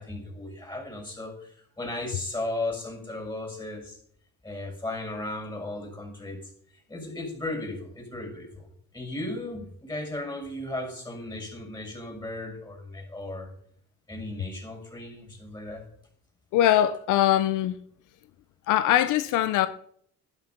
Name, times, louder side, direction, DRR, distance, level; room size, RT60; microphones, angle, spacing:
voice 1, 0.0-4.0 4.4-6.4 6.9-8.7 8.9-13.5 14.1-15.8, left 2 dB, 15° left, 6.6 m, -35 dB
voice 2, 16.5-17.8 18.7-19.7, left 12 dB, 90° left, 0.7 m, -22 dB
12.0 x 10.0 x 5.9 m
cardioid pair, 90°, 30 cm